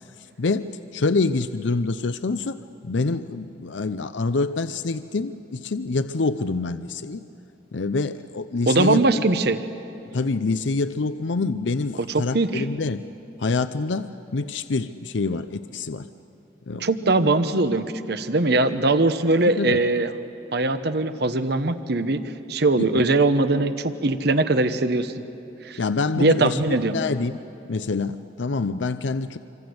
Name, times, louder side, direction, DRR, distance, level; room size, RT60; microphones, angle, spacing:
voice 1, 0.4-7.2 7.7-9.0 10.1-13.0 13.4-16.1 16.7-16.9 19.4-19.8 22.7-22.9 25.8-27.3 27.7-29.4, left 3 dB, 80° left, 12 dB, 0.6 m, -26 dB
voice 2, 8.7-9.6 12.1-12.6 16.8-20.1 20.5-22.2 22.5-25.2 25.6-25.8 26.2-26.9, right 2 dB, 60° right, 10 dB, 1.0 m, -21 dB
26.5 x 25.5 x 7.9 m, 3.0 s
head